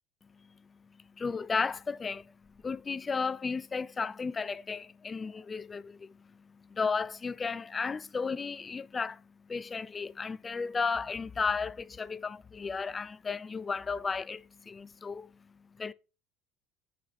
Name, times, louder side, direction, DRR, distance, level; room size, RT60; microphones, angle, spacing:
voice 1, 0.3-15.9, left 5 dB, 25° left, 0.4 m, -34 dB
7.9 x 6.7 x 4.1 m
cardioid pair, 120°, 0 cm